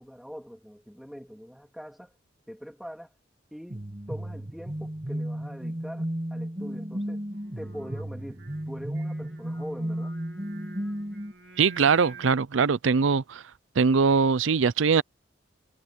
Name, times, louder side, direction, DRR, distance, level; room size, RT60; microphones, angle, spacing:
voice 1, 0.0-2.1 2.5-3.1 3.5-7.2 7.6-10.2, equal, ahead, 2.3 m, -43 dB
sound 1, 3.7-11.3, equal, 30° right, 2.1 m, -34 dB
Singing, 7.3-12.4, right 3 dB, 60° right, 2.7 m, -49 dB
voice 2, 11.6-13.4 13.8-15.0, right 5 dB, 85° right, 0.5 m, -22 dB
head